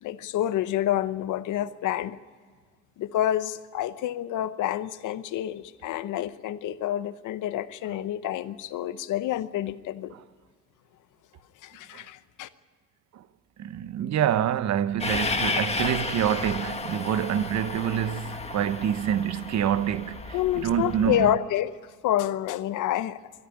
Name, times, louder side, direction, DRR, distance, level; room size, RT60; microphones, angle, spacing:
voice 1, 0.0-2.2 3.0-10.1 11.6-12.5 20.3-21.7 22.0-23.3, left 12 dB, 85° left, 0.9 m, -28 dB
voice 2, 13.6-20.2 20.5-21.3, right 10 dB, 65° right, 0.9 m, -26 dB
Train, 15.0-21.3, left 3 dB, 20° left, 1.6 m, -32 dB
22.0 x 12.5 x 9.9 m
cardioid pair, 90°, 30 cm